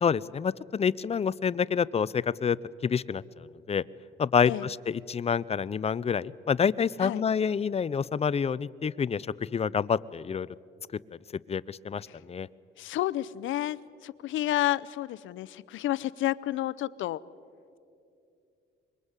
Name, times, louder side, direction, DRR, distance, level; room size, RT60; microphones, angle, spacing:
voice 1, 0.0-2.6 2.8-3.8 4.2-9.3 9.5-10.5 11.5-12.5, left 6 dB, 30° left, 19 dB, 0.6 m, -28 dB
voice 2, 12.8-17.2, left 14 dB, 80° left, 17 dB, 0.7 m, -30 dB
25.0 x 22.0 x 8.2 m, 2.5 s
cardioid pair, 90°, 20 cm